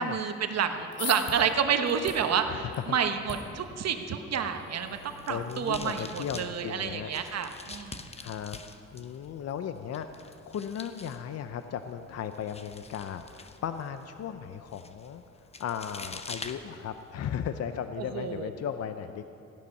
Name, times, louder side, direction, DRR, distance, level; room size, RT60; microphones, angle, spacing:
voice 1, 0.0-8.1 18.0-18.5, right 7 dB, 60° right, 7 dB, 1.1 m, -29 dB
sound 1, 0.6-6.9, left 4 dB, 70° left, 2.9 m, -44 dB
sound 2, 5.0-17.3, left 3 dB, 20° left, 0.8 m, -47 dB
voice 2, 5.3-7.1 8.2-8.6 8.9-15.2 15.6-19.3, left 8 dB, 55° left, 9 dB, 0.6 m, -36 dB
16.0 x 11.5 x 5.4 m, 2.7 s
cardioid pair, 90°, 30 cm